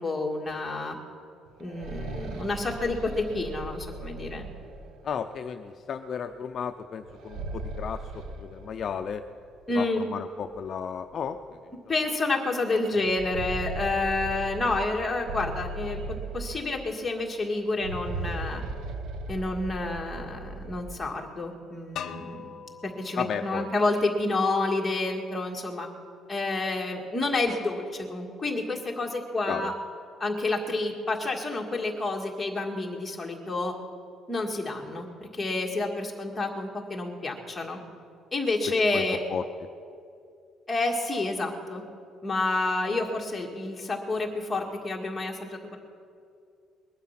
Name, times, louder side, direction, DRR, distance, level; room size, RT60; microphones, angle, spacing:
voice 1, 0.0-1.0 1.6-4.5 9.7-10.0 11.9-18.6 19.3-22.5 22.8-25.9 26.3-29.7 30.2-33.7 34.3-35.1 35.4-37.8 38.3-39.2 40.7-41.8 42.2-45.8, left 2 dB, 15° left, 0 dB, 1.8 m, -29 dB
sound 1, 1.5-5.3 7.0-9.2 9.5-9.6 10.5-10.6 11.1-11.2 12.9-17.0 17.7-21.1, right 3 dB, 70° right, 1.0 m, -38 dB
voice 2, 5.0-9.2 9.8-11.6 23.2-23.7 29.5-29.7 38.9-39.0 39.3-39.4, left 7 dB, 45° left, 6 dB, 0.5 m, -34 dB
sound 2, 22.0-24.9, left 8 dB, 60° left, 0.8 m, -43 dB
20.5 x 11.5 x 5.9 m, 2.4 s
cardioid pair, 155°, 0 cm